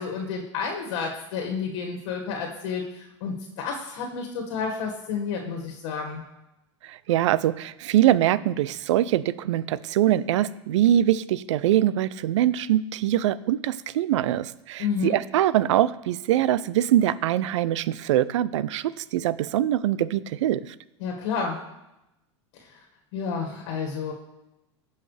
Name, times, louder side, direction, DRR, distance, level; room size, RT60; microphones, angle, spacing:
voice 1, 0.0-6.2 14.8-15.2 21.0-21.6 22.6-22.8 23.1-24.1, left 5 dB, 65° left, 1 dB, 1.7 m, -30 dB
voice 2, 6.8-20.7, right 12 dB, 75° right, 18 dB, 0.5 m, -23 dB
15.5 x 5.6 x 3.3 m, 0.91 s
hypercardioid pair, 110°, 16 cm